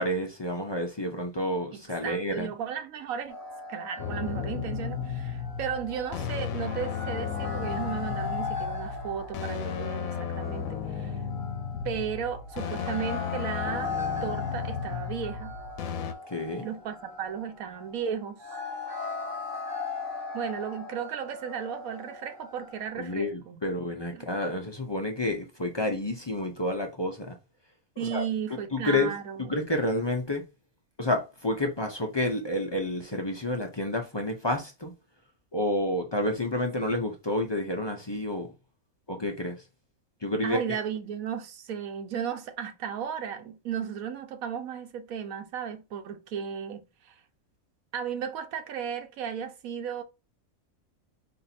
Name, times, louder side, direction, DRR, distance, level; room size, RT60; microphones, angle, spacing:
voice 1, 0.0-2.5 16.3-16.7 22.9-27.4 28.0-28.2 28.7-29.1 29.4-30.4 31.0-34.9 35.5-38.5 39.1-39.6 40.2-40.8, left 1 dB, 30° left, 0.5 m, -29 dB
voice 2, 1.7-3.4 3.7-11.2 11.8-15.5 16.6-18.4 20.3-23.6 24.1-24.3 28.0-29.6 40.4-47.2 47.9-50.0, right 8 dB, 85° right, 1.2 m, -35 dB
sound 1, 3.3-23.2, left 4 dB, 60° right, 2.3 m, -39 dB
sound 2, 4.0-16.1, left 7 dB, 85° left, 1.1 m, -34 dB
4.2 x 2.8 x 4.1 m
omnidirectional pair, 1.4 m